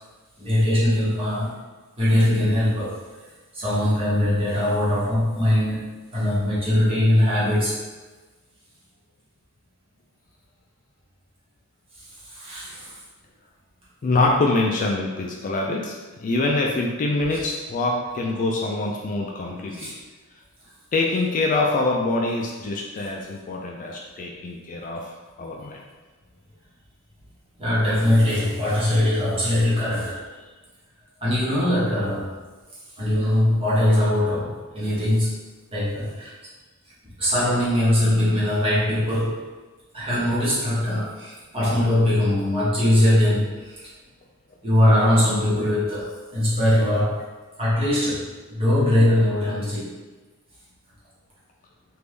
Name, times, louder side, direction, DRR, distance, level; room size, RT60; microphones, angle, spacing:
voice 1, 0.4-1.6 2.0-3.0 3.5-7.8 12.0-13.0 19.8-19.9 27.6-30.2 31.2-32.4 33.0-35.4 35.7-36.3 37.2-39.4 39.9-43.9 44.6-47.3 47.6-49.9, left 1 dB, 25° right, -10 dB, 1.2 m, -21 dB
voice 2, 14.0-15.9 16.2-19.9 20.9-25.8, left 2 dB, 35° left, 0 dB, 0.3 m, -24 dB
3.3 x 2.5 x 3.3 m, 1.3 s
head